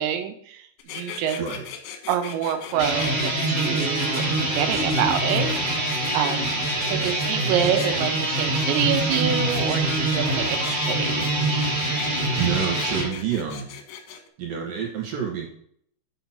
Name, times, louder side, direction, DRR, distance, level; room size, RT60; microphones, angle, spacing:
voice 1, 0.0-1.4 2.1-5.5 5.7-6.5 6.9-11.3, right 9 dB, 90° right, 6 dB, 3.2 m, -27 dB
sound 1, 0.8-14.3, left 8 dB, 80° left, 3.5 m, -38 dB
sound 2, 2.7-13.1, right 1 dB, 25° right, 3.2 m, -25 dB
voice 2, 12.3-13.8 14.4-15.5, right 8 dB, 65° right, 0 dB, 2.7 m, -28 dB
7.2 x 5.8 x 5.7 m, 0.64 s
omnidirectional pair, 5.0 m